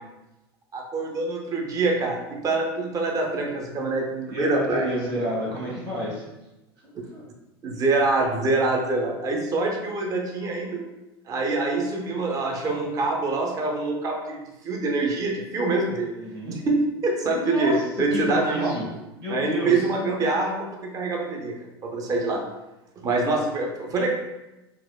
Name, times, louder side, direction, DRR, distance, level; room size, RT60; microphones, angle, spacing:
voice 1, 0.7-4.9 7.6-10.8 11.3-14.4 14.6-16.1 16.4-18.7 19.3-21.5 21.8-22.4 23.0-24.1, right 3 dB, 25° right, 1 dB, 0.5 m, -25 dB
voice 2, 4.3-6.3 7.1-7.2 16.2-16.6 17.2-18.9 19.2-19.9, equal, 65° right, -6 dB, 1.2 m, -30 dB
4.0 x 2.2 x 2.2 m, 0.99 s
figure-of-eight pair, 80°, 13 cm